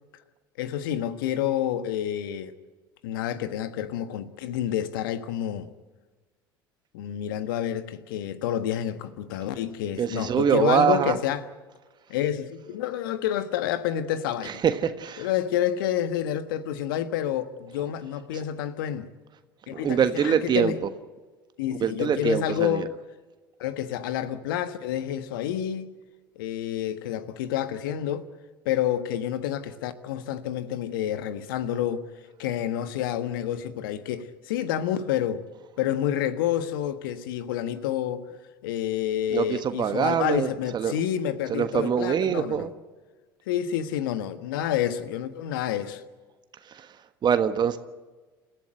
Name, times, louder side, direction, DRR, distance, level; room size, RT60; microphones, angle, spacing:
voice 1, 0.6-2.5 3.0-5.7 6.9-11.5 12.1-14.6 15.2-19.1 19.7-20.8 21.6-22.9 23.6-25.9 26.3-28.3 28.6-32.1 32.4-35.4 35.8-38.3 38.6-42.7 43.5-46.0, left 10 dB, 70° left, 1.5 m, -29 dB
voice 2, 10.0-11.2 14.4-15.3 19.7-20.7 21.8-22.9 39.3-41.0 41.5-42.7 47.2-47.8, right 8 dB, 40° right, 1.4 m, -24 dB
29.5 x 15.0 x 7.9 m
hypercardioid pair, 70°, 12 cm